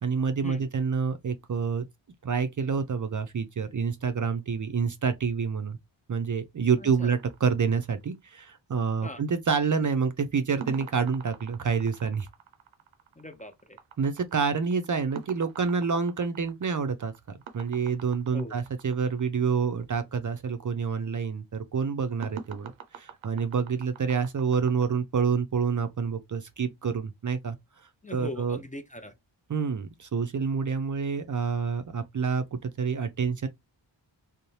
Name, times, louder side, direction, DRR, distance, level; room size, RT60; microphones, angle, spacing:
voice 1, 0.0-1.8 2.2-5.8 6.1-12.3 14.0-17.1 17.5-27.6 28.1-28.6 29.5-33.5, right 5 dB, 45° right, 0.5 m, -28 dB
voice 2, 6.8-7.1 9.0-9.2 13.2-13.8 18.3-18.5 28.0-29.1, left 1 dB, 15° left, 0.5 m, -40 dB
sound 1, 7.0-8.4 10.6-19.2 22.2-24.9, right 7 dB, 85° right, 0.6 m, -45 dB
2.7 x 2.0 x 3.1 m
cardioid pair, 45°, 46 cm